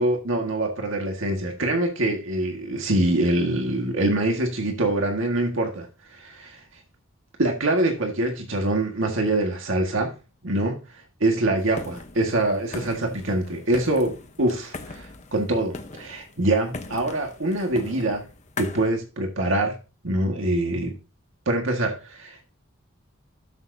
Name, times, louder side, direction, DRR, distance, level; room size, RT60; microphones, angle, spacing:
voice 1, 0.0-5.9 6.1-6.6 7.4-10.1 10.4-10.8 11.2-18.2 18.6-19.8 20.0-20.9 21.5-22.4, right 1 dB, 75° right, 1.8 m, -24 dB
sound 1, 11.6-18.9, left 3 dB, 35° left, 0.9 m, -40 dB
12.5 x 6.4 x 2.7 m
head